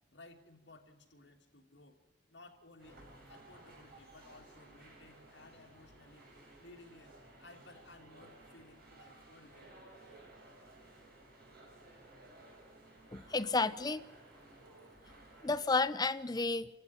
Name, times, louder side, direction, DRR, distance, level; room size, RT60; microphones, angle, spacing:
voice 1, 0.1-2.0 2.3-3.0 3.3-6.3 6.6-9.9, left 2 dB, 75° left, 2 dB, 2.7 m, -58 dB
sound 1, 2.8-15.8, right 2 dB, 55° right, 6.1 m, -57 dB
voice 2, 13.1-14.0 15.4-16.7, left 3 dB, 20° left, 13 dB, 0.6 m, -31 dB
27.5 x 11.5 x 10.0 m, 1.1 s
head